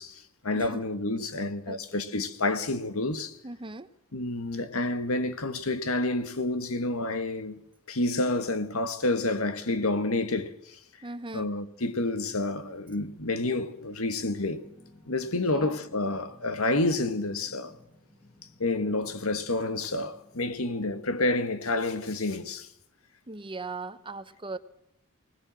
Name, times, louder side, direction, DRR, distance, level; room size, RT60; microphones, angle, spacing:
voice 1, 0.0-3.4 4.1-7.6 7.9-10.8 11.3-14.6 15.0-17.8 18.6-22.7, left 2 dB, 90° left, 1.6 m, -29 dB
voice 2, 1.7-2.1 3.4-3.9 11.0-11.5 15.3-15.7 23.3-24.6, right 3 dB, 25° right, 0.9 m, -39 dB
sound 1, 14.0-21.3, left 1 dB, 40° left, 5.2 m, -57 dB
20.5 x 19.0 x 7.6 m
head